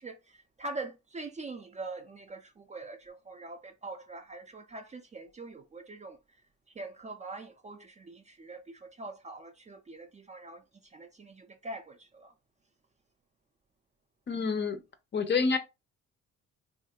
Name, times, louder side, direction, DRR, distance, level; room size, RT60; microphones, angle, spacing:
voice 1, 0.0-6.2 6.8-10.6 10.9-12.3, right 2 dB, 25° right, 0.4 m, -43 dB
voice 2, 14.3-14.8 15.1-15.6, left 4 dB, 40° left, 0.5 m, -27 dB
2.8 x 2.4 x 2.7 m
cardioid pair, 90°, 30 cm